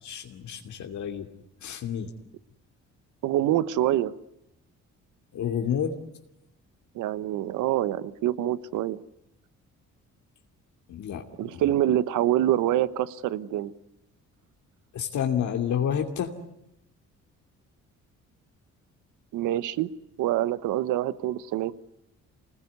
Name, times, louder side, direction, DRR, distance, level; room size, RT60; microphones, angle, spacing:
voice 1, 0.0-1.3 1.6-2.1 5.3-6.0 10.9-11.2 11.5-11.7 14.9-16.3, left 8 dB, 70° left, 3 dB, 2.7 m, -29 dB
voice 2, 3.2-4.1 6.9-9.0 11.4-13.7 19.3-19.9 20.2-21.7, right 13 dB, 90° right, 16 dB, 1.1 m, -25 dB
25.5 x 20.0 x 9.6 m, 0.85 s
cardioid pair, 90°, 30 cm